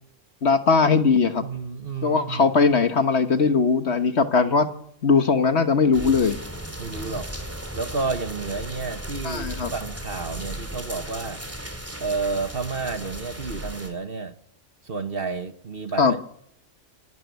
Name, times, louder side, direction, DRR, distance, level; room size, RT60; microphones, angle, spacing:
voice 1, 0.4-1.4 2.0-4.7 5.0-6.4 9.2-9.7 16.0-16.1, left 4 dB, 50° left, 9 dB, 1.5 m, -20 dB
voice 2, 1.4-2.6 6.8-7.3 7.7-11.4 12.0-14.3 14.8-16.2, right 4 dB, 45° right, 9 dB, 1.4 m, -31 dB
sound 1, 5.9-13.9, right 1 dB, 10° right, 3.2 m, -36 dB
26.5 x 13.5 x 9.5 m, 0.72 s
omnidirectional pair, 1.5 m